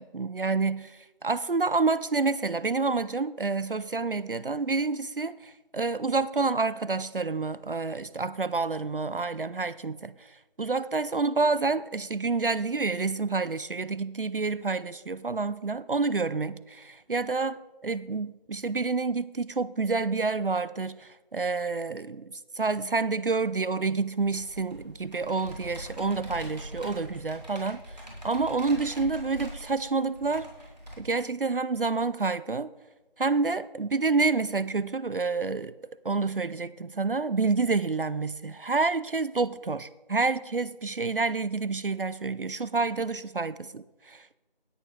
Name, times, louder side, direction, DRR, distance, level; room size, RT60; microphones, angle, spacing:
voice 1, 0.0-10.1 10.6-17.6 17.8-27.8 28.2-30.5 31.0-32.7 33.2-35.7 36.0-44.4, right 4 dB, 65° right, 0.5 m, -28 dB
Computer keyboard, 24.2-30.9, equal, 45° right, 2.8 m, -43 dB
18.5 x 6.9 x 3.2 m
figure-of-eight pair, 175°, 30 cm